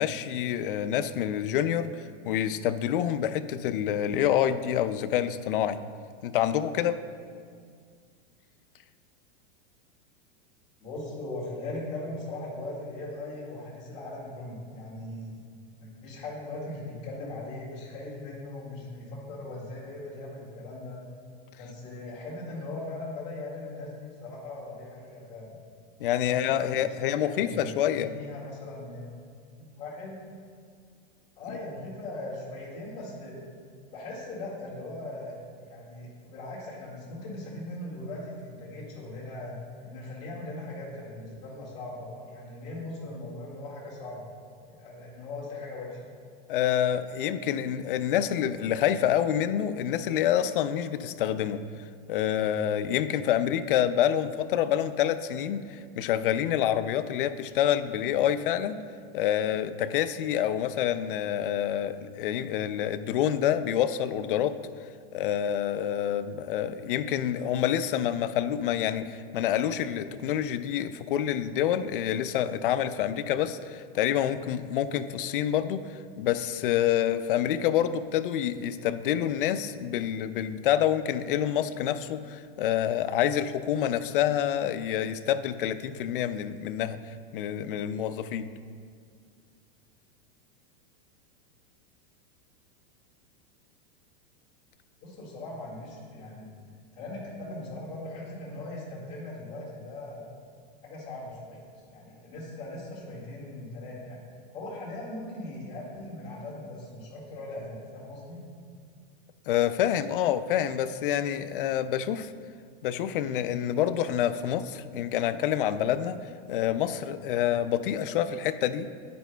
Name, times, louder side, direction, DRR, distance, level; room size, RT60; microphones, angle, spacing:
voice 1, 0.0-5.8 6.2-7.0 26.0-28.1 46.5-51.6 52.1-58.8 59.1-64.6 65.1-75.8 76.2-87.0 87.3-88.5 109.5-112.3 112.8-116.2 116.5-118.9, left 10 dB, 60° left, 11 dB, 0.4 m, -27 dB
voice 2, 10.8-15.3 15.8-21.0 21.6-25.6 26.1-29.0 29.5-30.2 31.4-33.4 33.9-35.3 35.6-39.6 39.8-44.3 44.8-46.1 95.0-96.5 96.9-100.2 100.8-101.6 101.9-104.2 104.5-108.4, left 2 dB, 20° left, -6 dB, 1.9 m, -39 dB
9.4 x 9.3 x 2.2 m, 2.1 s
supercardioid pair, 175°, 30 cm